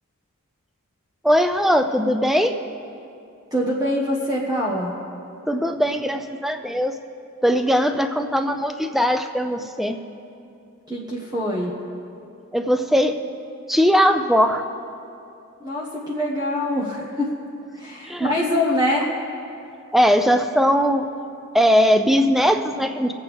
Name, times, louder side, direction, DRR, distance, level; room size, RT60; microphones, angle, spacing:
voice 1, 1.2-2.5 5.5-6.9 7.4-10.0 12.5-13.2 13.7-14.6 18.0-18.3 19.9-21.1 21.5-23.1, equal, ahead, 7 dB, 0.4 m, -19 dB
voice 2, 3.5-4.9 10.9-11.7 15.6-17.3 17.7-19.1, left 1 dB, 20° right, -4 dB, 1.2 m, -24 dB
24.0 x 8.2 x 3.5 m, 2.6 s
head